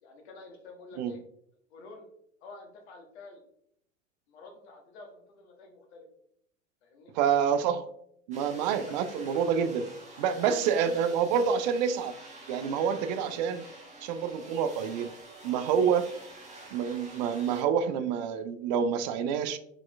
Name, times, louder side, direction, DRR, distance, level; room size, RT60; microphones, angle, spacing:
voice 1, 0.0-1.2 1.7-2.1 2.4-3.4 4.3-6.0 6.8-7.1 8.9-9.0 10.3-11.2, left 3 dB, 55° left, 3 dB, 1.2 m, -48 dB
voice 2, 7.1-7.8 8.3-9.9 10.2-12.1 12.5-13.6 14.0-15.1 15.4-16.1 16.7-19.6, right 7 dB, 35° right, 11 dB, 0.4 m, -27 dB
sound 1, 8.3-17.6, right 2 dB, 20° right, 1.2 m, -48 dB
4.6 x 4.2 x 2.3 m, 0.71 s
figure-of-eight pair, 85°, 38 cm